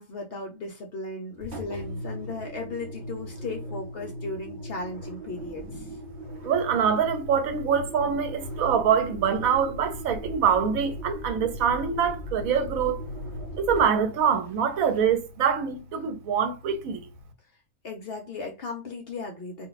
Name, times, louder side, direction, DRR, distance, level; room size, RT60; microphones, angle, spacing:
voice 1, 0.0-5.9 17.8-19.7, left 3 dB, 60° left, 0.7 m, -36 dB
Engine, 1.4-15.3, equal, 55° right, 1.0 m, -38 dB
voice 2, 6.4-13.0 13.6-17.1, right 7 dB, 80° right, 1.1 m, -24 dB
2.5 x 2.2 x 3.9 m
omnidirectional pair, 1.5 m